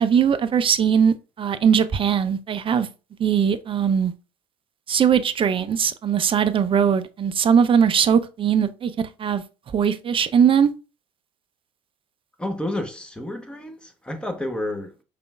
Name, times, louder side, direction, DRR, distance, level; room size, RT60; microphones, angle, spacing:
voice 1, 0.0-2.9 3.2-4.1 4.9-9.4 9.7-10.7, right 7 dB, 30° right, 0.5 m, -20 dB
voice 2, 12.4-15.0, left 1 dB, 5° left, 1.0 m, -30 dB
5.1 x 3.3 x 2.3 m
figure-of-eight pair, 60°, 18 cm